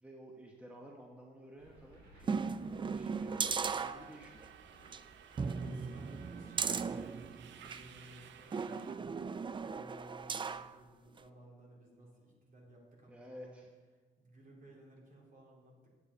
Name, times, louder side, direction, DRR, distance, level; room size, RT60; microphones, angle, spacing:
voice 1, 0.0-4.5 13.1-13.7, equal, 5° right, 0 dB, 1.0 m, -53 dB
sound 1, 1.6-8.2, right 1 dB, 85° right, 3.3 m, -61 dB
sound 2, 2.2-4.5 4.9-5.0 5.4-7.9 8.5-10.7 11.2-11.3, right 5 dB, 25° right, 0.3 m, -37 dB
Subway metro underground, 3.9-8.9, right 9 dB, 70° right, 0.6 m, -57 dB
voice 2, 5.5-13.6 14.2-15.9, right 1 dB, 45° right, -3 dB, 3.3 m, -58 dB
8.7 x 8.3 x 4.2 m, 1.4 s
cardioid pair, 90°, 20 cm